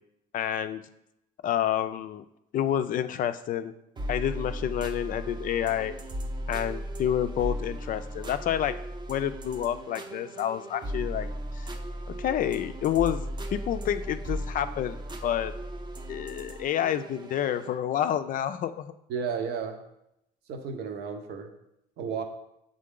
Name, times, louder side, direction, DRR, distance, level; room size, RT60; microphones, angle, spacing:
voice 1, 0.3-0.8 1.4-2.2 2.5-3.7 4.1-6.0 6.5-8.8 9.1-11.7 12.1-13.2 13.5-15.6 16.1-18.9, left 10 dB, 55° left, 10 dB, 0.4 m, -29 dB
sound 1, 4.0-17.8, right 1 dB, 25° right, 0.6 m, -36 dB
voice 2, 19.1-19.8 20.5-21.5 22.0-22.2, right 6 dB, 75° right, 6 dB, 0.9 m, -33 dB
7.6 x 3.8 x 3.7 m, 0.81 s
cardioid pair, 110°, 17 cm